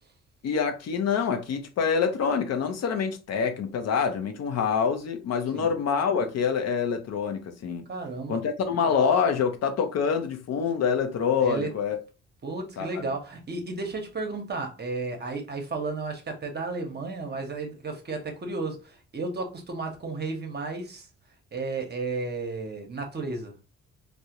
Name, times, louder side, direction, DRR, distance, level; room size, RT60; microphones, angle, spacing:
voice 1, 0.4-7.8 8.3-12.0 12.8-13.1, left 6 dB, 60° left, 0.5 m, -26 dB
voice 2, 7.9-8.4 11.4-11.7 12.4-21.1 21.5-23.5, right 3 dB, 35° right, 0.7 m, -33 dB
2.3 x 2.1 x 2.8 m
cardioid pair, 90°, 30 cm